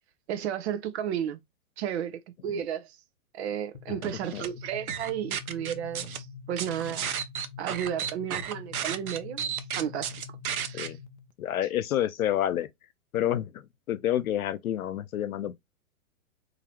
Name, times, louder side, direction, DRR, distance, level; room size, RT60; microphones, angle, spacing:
voice 1, 0.3-1.4 1.8-3.0 3.3-7.1 7.6-10.2 10.6-10.9, right 9 dB, 50° right, 0.7 m, -33 dB
sound 1, 3.7-11.3, left 6 dB, 30° left, 0.4 m, -45 dB
sound 2, 4.0-4.5 4.9-6.2 6.6-10.9, right 8 dB, 90° right, 0.8 m, -33 dB
voice 2, 11.4-12.7 13.1-15.6, left 11 dB, 80° left, 0.7 m, -29 dB
3.8 x 2.7 x 2.9 m
hypercardioid pair, 135°, 42 cm